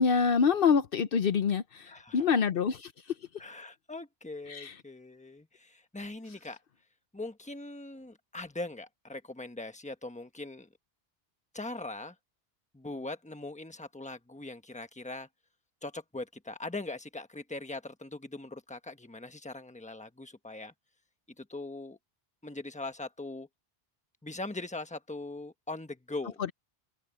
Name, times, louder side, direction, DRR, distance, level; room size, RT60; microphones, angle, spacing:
voice 1, 0.0-2.9 4.5-4.7, left 6 dB, 65° left, 0.9 m, -26 dB
voice 2, 1.9-2.3 3.4-6.6 7.1-10.7 11.5-12.1 12.7-15.3 15.8-20.7 21.4-22.0 22.4-23.5 24.2-26.4, left 2 dB, 5° left, 1.2 m, -41 dB
open air
omnidirectional pair, 1.0 m